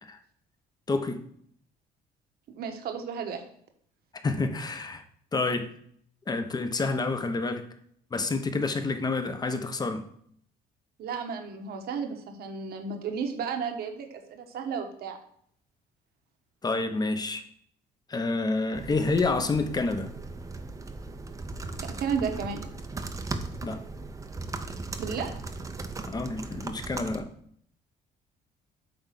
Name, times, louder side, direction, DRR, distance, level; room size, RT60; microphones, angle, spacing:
voice 1, 0.9-1.2 4.2-5.0 5.3-5.7 6.3-7.6 8.1-10.1 16.6-17.4 18.1-20.1 23.6-23.8 26.1-27.3, left 3 dB, 25° left, 0.9 m, -28 dB
voice 2, 2.6-3.4 11.0-15.2 21.8-22.6 25.0-25.3, right 6 dB, 65° right, 1.3 m, -33 dB
sound 1, 18.7-27.2, right 3 dB, 20° right, 0.7 m, -38 dB
8.7 x 3.6 x 5.8 m
cardioid pair, 110°, 17 cm